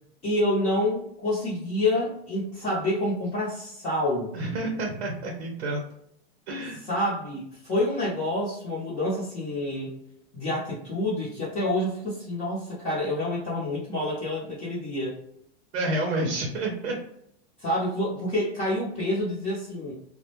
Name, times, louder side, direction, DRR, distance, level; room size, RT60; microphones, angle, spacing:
voice 1, 0.2-4.4 6.9-9.9 10.3-15.2 17.6-19.9, left 1 dB, 20° left, -8 dB, 0.6 m, -28 dB
voice 2, 4.3-5.8 6.5-6.8 15.7-17.0, right 2 dB, 90° right, 1 dB, 0.7 m, -29 dB
2.2 x 2.1 x 2.8 m, 0.72 s
supercardioid pair, 145°, 32 cm